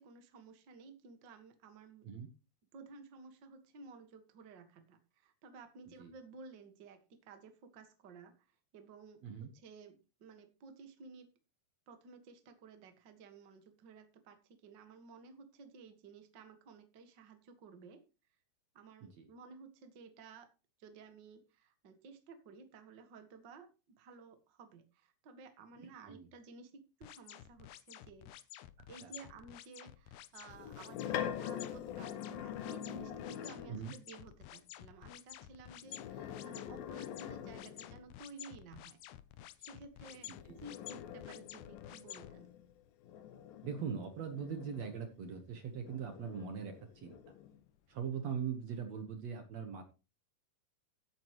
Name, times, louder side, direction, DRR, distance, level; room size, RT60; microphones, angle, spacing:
voice 1, 0.0-2.1 2.7-11.3 11.9-18.1 18.7-20.5 20.8-28.3 28.9-39.0 39.6-40.3 40.6-42.5, right 4 dB, 40° right, 6 dB, 1.8 m, -55 dB
voice 2, 25.8-26.3 29.0-29.1 33.7-34.0 40.5-40.6 43.6-47.2 47.9-49.8, right 7 dB, 60° right, 6 dB, 2.2 m, -41 dB
sound 1, 27.0-42.3, left 13 dB, 75° left, 1.9 m, -52 dB
sound 2, 30.5-33.8 35.8-38.1 40.1-45.3 45.8-47.6, left 10 dB, 90° left, 2.7 m, -44 dB
15.5 x 8.7 x 3.1 m, 0.30 s
omnidirectional pair, 3.9 m